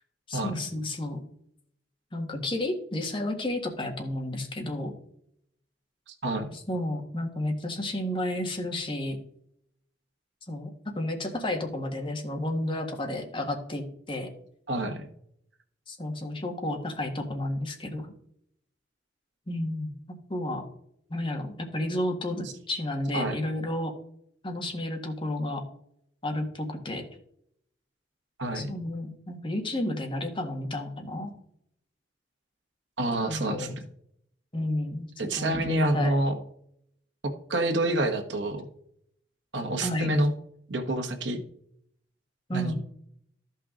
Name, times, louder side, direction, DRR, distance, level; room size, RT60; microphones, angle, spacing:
voice 1, 0.3-1.2 2.1-4.9 6.7-9.2 10.5-10.7 10.9-14.3 15.9-18.1 19.5-19.9 20.3-20.7 21.1-23.9 24.4-25.6 26.2-27.0 28.5-31.3 33.3-33.7 34.5-35.1 35.4-36.1 39.8-40.1 42.5-42.8, left 1 dB, 30° left, 3 dB, 1.5 m, -31 dB
voice 2, 6.1-6.5 14.7-15.1 23.1-23.4 28.4-28.7 33.0-33.8 35.2-36.4 37.2-38.7 39.5-40.3 40.7-41.4 42.5-42.8, right 1 dB, 80° right, 6 dB, 1.3 m, -28 dB
13.5 x 5.7 x 3.8 m, 0.69 s
head